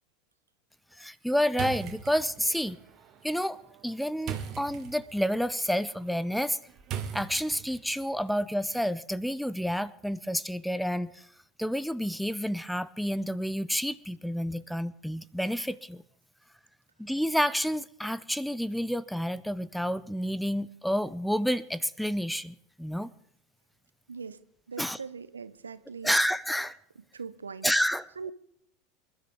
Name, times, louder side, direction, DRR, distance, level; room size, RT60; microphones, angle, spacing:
voice 1, 0.9-2.8 3.2-6.6 7.1-11.3 11.6-16.0 17.0-23.1 24.8-25.0 26.0-26.8 27.6-28.3, equal, ahead, 0.5 m, -29 dB
sound 1, 1.5-8.0, right 8 dB, 40° right, 1.9 m, -41 dB
voice 2, 24.1-24.4 24.7-26.1 27.1-27.7 28.2-28.3, right 5 dB, 80° right, 0.7 m, -40 dB
27.0 x 12.0 x 3.6 m
figure-of-eight pair, 80°, 0 cm